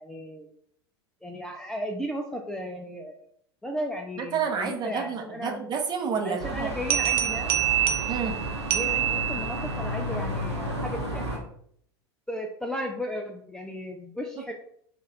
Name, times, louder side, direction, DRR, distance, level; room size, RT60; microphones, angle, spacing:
voice 1, 0.0-0.5 1.2-3.2 3.6-5.6 6.2-7.6 8.7-11.5 12.3-14.5, equal, 5° left, 2 dB, 0.4 m, -35 dB
voice 2, 4.2-6.7 8.1-8.4, right 6 dB, 30° right, 3 dB, 0.8 m, -30 dB
sound 1, 6.4-11.4, equal, 85° right, 0.9 m, -32 dB
sound 2, 6.9-9.8, right 11 dB, 65° right, 0.6 m, -26 dB
4.0 x 2.5 x 3.9 m, 0.65 s
figure-of-eight pair, 85°, 14 cm